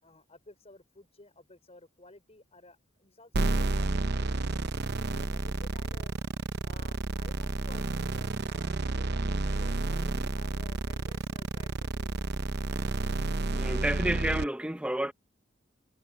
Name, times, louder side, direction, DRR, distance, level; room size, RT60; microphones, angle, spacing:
voice 1, 0.0-4.6 5.1-6.1 6.6-12.1, left 2 dB, 35° left, 4.7 m, -55 dB
sound 1, 3.3-14.4, right 2 dB, 55° right, 0.8 m, -30 dB
voice 2, 13.5-15.1, right 1 dB, 5° right, 1.0 m, -30 dB
head